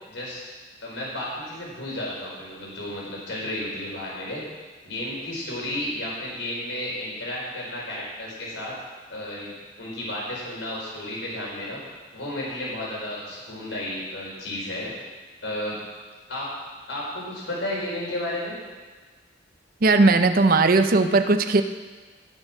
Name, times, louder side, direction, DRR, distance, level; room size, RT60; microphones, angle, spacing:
voice 1, 0.1-0.4 0.8-4.4 4.8-8.7 9.1-9.5 9.8-11.8 12.1-14.9 15.4-15.8 16.3-16.5 16.9-18.6, left 1 dB, 75° left, -4 dB, 4.5 m, -32 dB
voice 2, 19.8-21.6, right 3 dB, 50° right, 8 dB, 0.6 m, -18 dB
16.5 x 6.7 x 5.9 m, 1.4 s
head